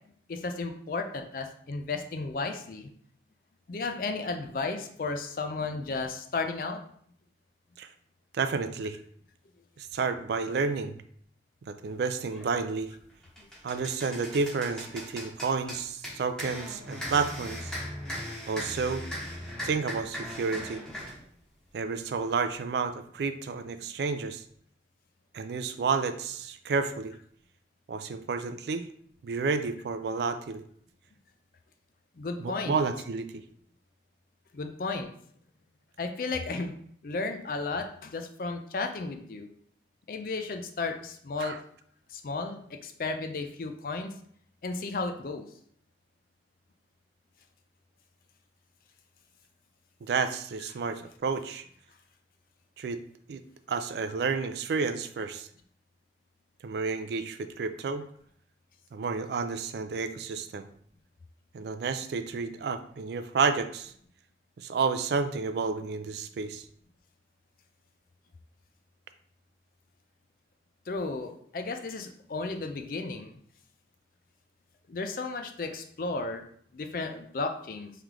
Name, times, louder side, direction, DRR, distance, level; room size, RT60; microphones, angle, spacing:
voice 1, 0.3-2.9 3.7-6.8 13.4-13.5 32.2-32.8 34.5-35.1 36.0-36.7 37.0-39.5 40.1-41.6 42.1-44.1 44.6-45.5 70.9-73.3 74.9-76.5 76.7-77.9, left 3 dB, 50° left, 5 dB, 0.4 m, -34 dB
voice 2, 8.3-9.0 9.8-11.0 11.7-12.9 13.6-17.7 18.5-19.0 19.6-20.8 21.7-24.4 25.3-27.1 27.9-28.9 29.2-30.6 32.4-33.3 41.4-41.6 50.0-51.6 52.8-53.0 53.3-53.4 53.7-55.5 56.6-58.1 58.9-60.7 61.5-63.9 64.6-66.6, right 4 dB, 65° right, 10 dB, 0.3 m, -30 dB
sound 1, 12.3-12.5 13.0-21.2, equal, 5° left, 0.8 m, -39 dB
3.2 x 3.0 x 3.7 m, 0.63 s
head